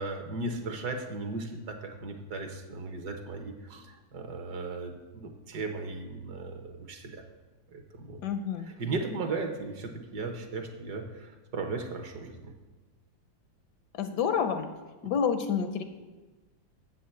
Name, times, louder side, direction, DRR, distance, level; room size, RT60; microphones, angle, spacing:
voice 1, 0.0-7.2 7.7-8.2 8.8-12.5, right 3 dB, 60° right, 5 dB, 1.4 m, -36 dB
voice 2, 8.2-8.7 13.9-14.7 15.0-15.8, left 7 dB, 70° left, 8 dB, 1.1 m, -28 dB
7.5 x 5.7 x 7.7 m, 1.2 s
omnidirectional pair, 2.1 m